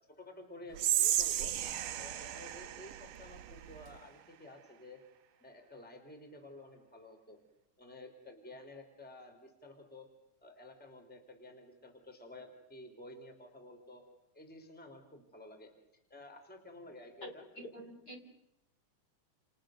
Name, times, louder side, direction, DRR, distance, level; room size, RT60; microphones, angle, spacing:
voice 1, 0.2-1.5 1.9-5.0 5.4-7.4 7.8-10.1 10.4-14.0 14.3-15.7 16.1-17.4, left 2 dB, 5° left, 4 dB, 3.4 m, -52 dB
Whispering, 0.7-4.0, right 12 dB, 85° right, 2.7 m, -34 dB
voice 2, 17.6-18.2, equal, 30° left, 2 dB, 3.9 m, -46 dB
29.5 x 29.5 x 6.5 m, 0.87 s
omnidirectional pair, 3.7 m